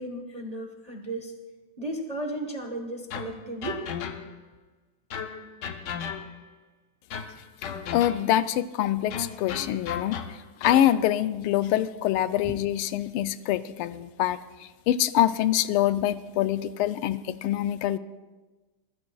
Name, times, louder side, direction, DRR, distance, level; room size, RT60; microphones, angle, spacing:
voice 1, 0.0-1.3 1.8-3.8 12.4-12.6, right 1 dB, 30° right, 3 dB, 0.7 m, -34 dB
sound 1, 3.1-4.5 5.1-6.6 7.1-8.5 9.1-11.0, left 7 dB, 65° left, 1.3 m, -36 dB
voice 2, 7.6-10.2 10.6-18.0, left 12 dB, 90° left, 13 dB, 1.5 m, -25 dB
24.0 x 15.5 x 2.3 m, 1.2 s
omnidirectional pair, 2.4 m